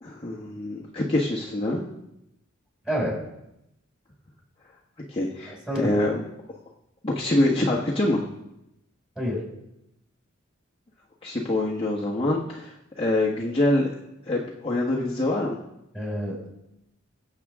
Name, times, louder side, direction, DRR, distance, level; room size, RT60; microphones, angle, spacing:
voice 1, 0.0-1.8 5.1-6.2 7.0-8.2 11.2-13.9 14.3-15.6, left 1 dB, 25° left, -4 dB, 1.3 m, -25 dB
voice 2, 2.9-3.2 5.5-6.0 9.2-9.5 15.9-16.5, equal, 5° right, -4 dB, 5.3 m, -28 dB
22.0 x 8.0 x 3.6 m, 0.86 s
head